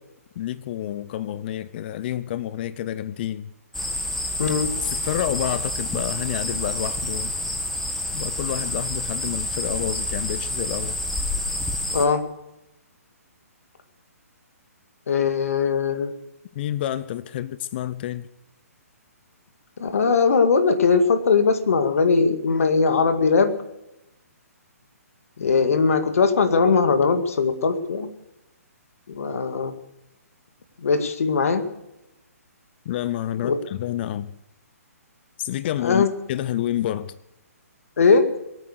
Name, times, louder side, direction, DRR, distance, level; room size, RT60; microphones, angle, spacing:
voice 1, 0.4-3.5 4.8-7.3 8.1-11.0 16.5-18.3 32.9-34.3 35.4-37.1, left 12 dB, 40° left, 0.6 m, -29 dB
sound 1, 3.7-12.1, left 1 dB, 5° left, 1.4 m, -28 dB
voice 2, 4.4-4.7 11.9-12.2 15.1-16.1 19.8-23.5 25.4-28.1 29.1-29.7 30.8-31.6 33.4-33.6 35.8-36.1 38.0-38.3, left 5 dB, 65° left, 2.1 m, -20 dB
23.0 x 9.0 x 6.7 m
figure-of-eight pair, 135°, 8 cm